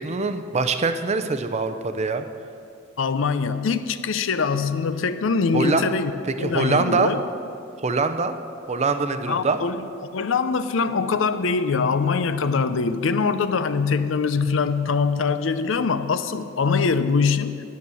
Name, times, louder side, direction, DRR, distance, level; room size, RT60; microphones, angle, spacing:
voice 1, 0.0-2.3 5.5-5.9 6.4-7.1 7.8-8.4 8.7-9.6, right 4 dB, 35° right, 8 dB, 0.6 m, -23 dB
voice 2, 3.0-6.1 6.4-7.2 9.3-9.8 10.1-17.7, left 5 dB, 70° left, 12 dB, 0.5 m, -23 dB
9.5 x 9.2 x 6.9 m, 2.4 s
head